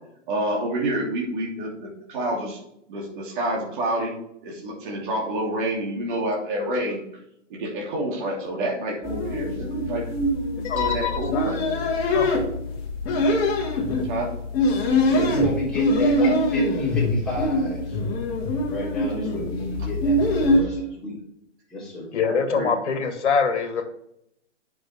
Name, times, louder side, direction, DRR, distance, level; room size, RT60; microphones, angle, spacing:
voice 1, 0.3-2.6 2.9-4.1 4.4-7.0 7.5-10.0 10.6-11.9 13.0-13.1 14.1-14.3 22.2-22.7, right 1 dB, 45° right, -3 dB, 2.8 m, -28 dB
sound 1, 9.0-20.6, left 1 dB, 20° left, 2.0 m, -23 dB
voice 2, 10.6-11.5 12.1-12.3 22.1-23.8, left 5 dB, 65° left, 4 dB, 1.9 m, -24 dB
voice 3, 15.1-18.0 18.7-21.1 21.7-22.1, left 2 dB, ahead, -8 dB, 3.3 m, -31 dB
9.5 x 6.2 x 3.5 m, 0.75 s
hypercardioid pair, 150°, 37 cm